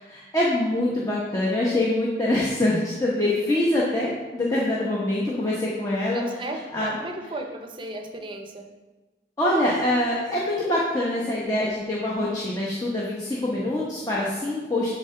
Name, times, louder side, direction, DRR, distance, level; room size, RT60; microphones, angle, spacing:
voice 1, 0.1-6.4 6.7-6.9 9.4-14.9, left 1 dB, 20° left, -6 dB, 1.0 m, -24 dB
voice 2, 6.1-8.7, right 1 dB, 30° right, 4 dB, 0.7 m, -35 dB
10.5 x 3.8 x 4.5 m, 1.2 s
head